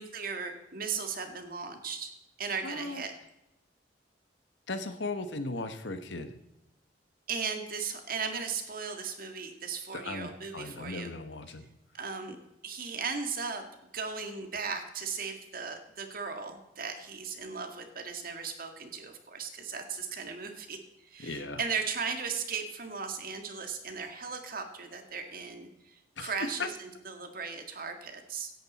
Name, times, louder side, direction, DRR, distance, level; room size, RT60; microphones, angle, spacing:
voice 1, 0.0-2.1 2.4-3.1 7.3-11.1 11.9-12.4 12.6-13.6 13.9-28.5, right 5 dB, 50° right, 6 dB, 1.9 m, -37 dB
voice 2, 2.6-3.0 4.7-6.3 9.9-11.7 21.2-21.6 26.2-26.3 26.6-26.7, left 3 dB, 80° left, 9 dB, 1.2 m, -37 dB
17.0 x 10.5 x 4.2 m, 0.91 s
head